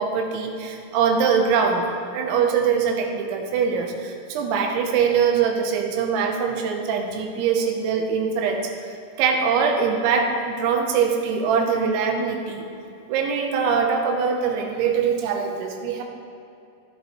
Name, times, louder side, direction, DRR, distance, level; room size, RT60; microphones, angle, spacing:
voice 1, 0.0-1.9 2.1-12.7 13.1-16.0, right 6 dB, 85° right, 2 dB, 3.3 m, -23 dB
14.0 x 10.5 x 3.2 m, 2.8 s
omnidirectional pair, 5.4 m